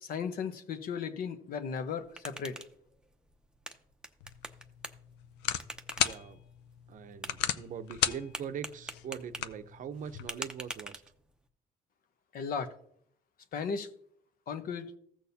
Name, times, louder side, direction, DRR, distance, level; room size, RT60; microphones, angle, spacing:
voice 1, 0.0-2.6 12.3-12.7 13.5-13.9 14.5-14.9, left 6 dB, 60° left, 9 dB, 1.0 m, -36 dB
sound 1, 1.8-11.5, right 1 dB, 5° right, 0.7 m, -47 dB
sound 2, 4.2-10.3, left 10 dB, 85° left, 0.5 m, -36 dB
voice 2, 6.0-6.4 6.9-11.0, right 8 dB, 50° right, 10 dB, 0.7 m, -42 dB
15.0 x 6.3 x 2.8 m, 0.68 s
cardioid pair, 110°, 17 cm